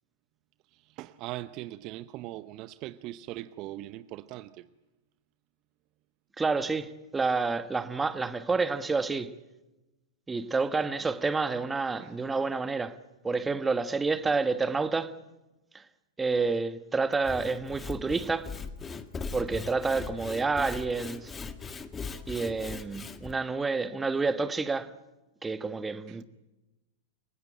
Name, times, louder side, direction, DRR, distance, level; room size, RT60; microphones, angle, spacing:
voice 1, 0.7-4.7 12.0-12.2 26.1-26.2, right 16 dB, 40° right, 0.8 m, -41 dB
voice 2, 6.4-9.3 10.3-13.0 13.2-15.2 15.7-15.8 16.2-18.5 19.3-21.3 22.3-24.9 25.4-26.2, right 4 dB, 15° right, 1.4 m, -29 dB
Sawing / Wood, 17.1-23.3, left 5 dB, 20° left, 1.8 m, -39 dB
29.5 x 17.5 x 8.8 m
hypercardioid pair, 105°, 0 cm